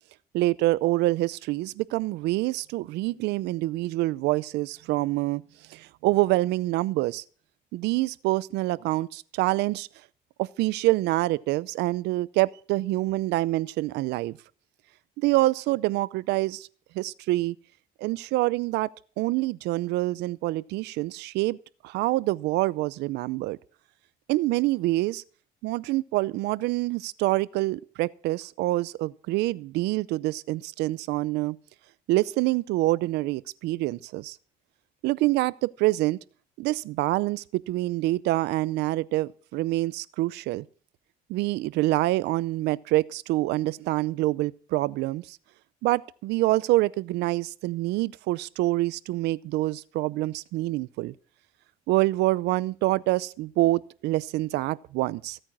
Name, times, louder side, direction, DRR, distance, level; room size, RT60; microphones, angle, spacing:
voice 1, 0.3-5.4 5.7-7.2 7.7-9.9 10.4-14.4 15.2-16.7 16.9-17.6 18.0-18.9 19.2-21.6 21.8-23.6 24.3-25.2 25.6-31.6 32.1-34.4 35.0-36.2 36.6-40.7 41.3-45.4 45.8-51.1 51.9-55.4, right 18 dB, 85° right, 0.6 m, -26 dB
16.0 x 8.9 x 6.1 m
cardioid pair, 110°, 17 cm